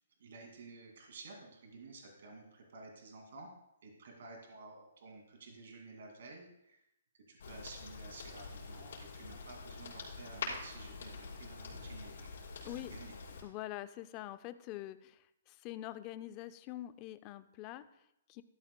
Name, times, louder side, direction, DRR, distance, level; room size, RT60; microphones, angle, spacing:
voice 1, 0.2-3.5 3.8-6.8 7.3-12.3 12.6-13.1, right 3 dB, 55° right, 1 dB, 2.3 m, -52 dB
sound 1, 7.4-13.4, left 4 dB, 55° left, 5.2 m, -45 dB
voice 2, 13.4-18.4, left 14 dB, 20° left, 13 dB, 0.4 m, -45 dB
16.0 x 13.0 x 2.2 m, 0.84 s
hypercardioid pair, 175°, 0 cm